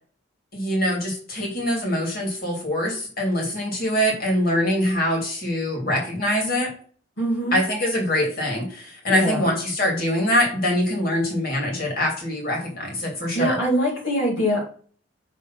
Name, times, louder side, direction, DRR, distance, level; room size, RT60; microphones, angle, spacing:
voice 1, 0.5-6.7 7.5-13.6, equal, 50° left, 0 dB, 2.7 m, -24 dB
voice 2, 7.2-7.6 9.1-9.5 13.3-14.6, equal, 80° left, -2 dB, 2.2 m, -23 dB
6.5 x 3.7 x 5.7 m, 0.44 s
head